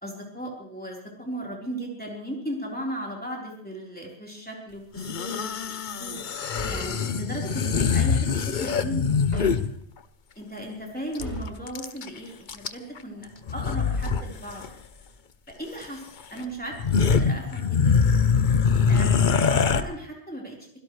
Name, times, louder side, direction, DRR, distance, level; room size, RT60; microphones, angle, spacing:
voice 1, 0.0-9.5 10.4-14.7 15.6-16.0 16.3-18.0 18.9-20.6, right 1 dB, 10° left, -2 dB, 4.1 m, -36 dB
sound 1, 5.0-9.7 11.2-11.3 11.5-12.1 12.5-13.0 13.5-14.2 14.5-14.7 15.8-15.9 16.4-16.5 16.7-19.8, left 6 dB, 50° left, 0.9 m, -23 dB
sound 2, 6.5-7.1 9.3-9.8 11.2-11.6, left 2 dB, 80° left, 4.6 m, -35 dB
24.5 x 16.5 x 3.2 m, 0.64 s
omnidirectional pair, 1.2 m